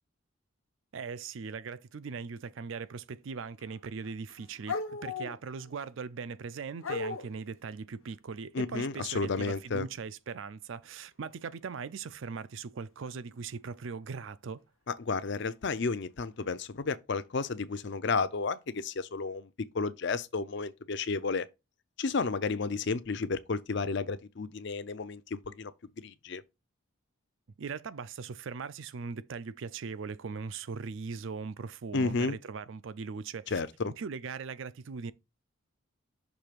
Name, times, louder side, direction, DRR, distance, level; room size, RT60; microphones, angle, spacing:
voice 1, 0.9-14.6 27.6-33.6 34.0-35.1, right 5 dB, 60° right, 0.4 m, -40 dB
sound 1, 3.3-3.8 4.0-5.8 6.8-7.4 11.5-11.8 13.0-13.1 15.3-15.4 16.2-16.4, left 3 dB, 70° left, 0.9 m, -37 dB
voice 2, 8.5-9.9 14.9-21.5 22.0-25.7 26.0-26.4 31.9-32.4 33.5-33.9, left 4 dB, 55° left, 0.5 m, -32 dB
6.2 x 3.2 x 5.1 m
head